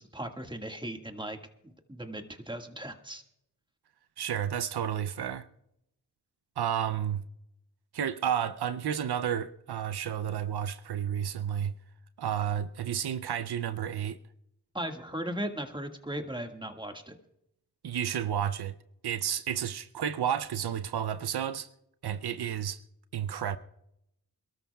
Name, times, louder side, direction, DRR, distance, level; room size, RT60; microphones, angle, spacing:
voice 1, 0.0-1.4 1.6-3.2 14.7-17.1, right 1 dB, 10° right, 1.7 m, -37 dB
voice 2, 4.2-5.4 6.6-7.2 7.9-11.7 12.2-14.2 17.8-18.7 19.0-21.7 22.0-22.8 23.1-23.6, right 9 dB, 85° right, 0.6 m, -31 dB
27.5 x 13.0 x 2.3 m
cardioid pair, 45°, 38 cm